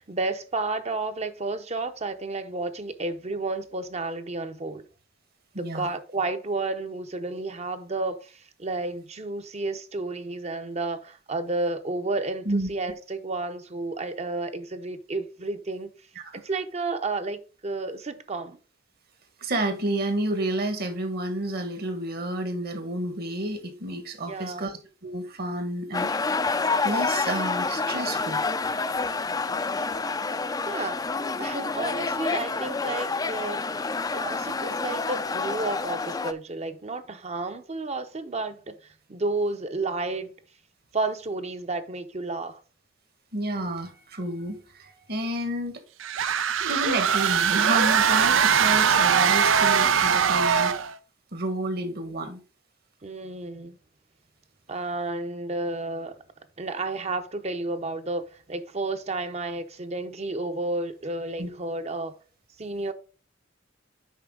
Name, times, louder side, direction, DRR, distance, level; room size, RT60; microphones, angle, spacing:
voice 1, 0.0-4.8 5.6-15.9 16.3-18.6 24.3-24.7 30.7-31.0 31.4-33.6 34.1-38.7 39.1-40.3 40.9-42.6 53.0-53.8 54.7-56.2 56.6-62.1 62.6-62.9, right 2 dB, 35° right, 0.8 m, -31 dB
voice 2, 5.5-5.9 12.4-12.7 16.1-16.4 19.4-24.7 25.0-26.6 26.8-28.4 43.3-45.8 46.6-50.8 51.3-52.4 61.4-61.5, right 1 dB, 55° right, 1.5 m, -30 dB
sound 1, 25.9-36.3, left 4 dB, 20° left, 0.4 m, -28 dB
sound 2, 46.0-50.9, right 7 dB, 90° right, 0.5 m, -21 dB
8.3 x 5.6 x 3.7 m
head